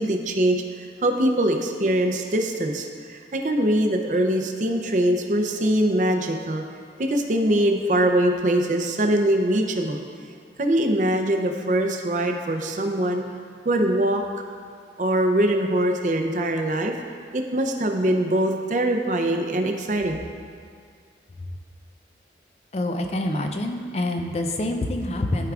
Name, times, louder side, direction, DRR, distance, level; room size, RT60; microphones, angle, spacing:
voice 1, 0.0-6.6 7.0-10.0 10.6-13.2 13.6-14.2 15.0-16.9 17.3-20.3, right 1 dB, 45° right, 3 dB, 0.5 m, -22 dB
voice 2, 22.7-25.5, left 1 dB, 35° left, 4 dB, 0.4 m, -26 dB
13.5 x 4.7 x 2.4 m, 2.1 s
head